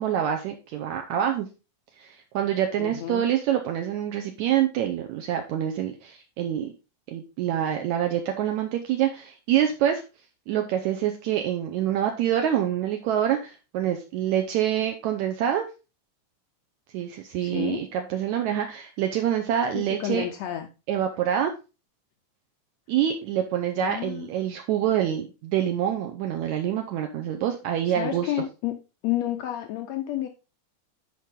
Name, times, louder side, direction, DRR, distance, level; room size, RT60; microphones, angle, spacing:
voice 1, 0.0-1.5 2.0-6.7 7.1-10.0 10.5-15.7 16.9-20.3 20.9-21.5 22.9-28.3, right 10 dB, 75° right, 4 dB, 1.9 m, -26 dB
voice 2, 2.8-3.3 17.4-17.8 19.7-20.7 23.8-24.3 27.8-28.8 29.0-30.3, left 12 dB, 85° left, 6 dB, 1.5 m, -30 dB
10.0 x 4.6 x 3.7 m, 0.30 s
omnidirectional pair, 3.8 m